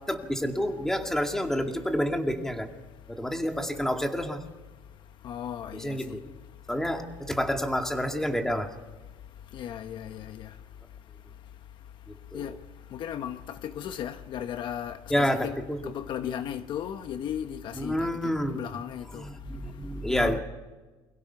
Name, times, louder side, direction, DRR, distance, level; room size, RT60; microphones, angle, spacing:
voice 1, 0.1-2.7 3.1-4.4 5.7-6.2 6.7-8.7 12.3-12.5 15.1-15.8 17.7-18.7 19.1-20.4, equal, 5° left, 2.3 m, -29 dB
voice 2, 5.2-6.2 9.5-10.5 12.3-12.5 12.9-15.6 15.8-18.1 18.5-19.2 20.1-20.4, left 9 dB, 55° left, 1.0 m, -36 dB
29.0 x 22.5 x 5.8 m
cardioid pair, 125°, 10 cm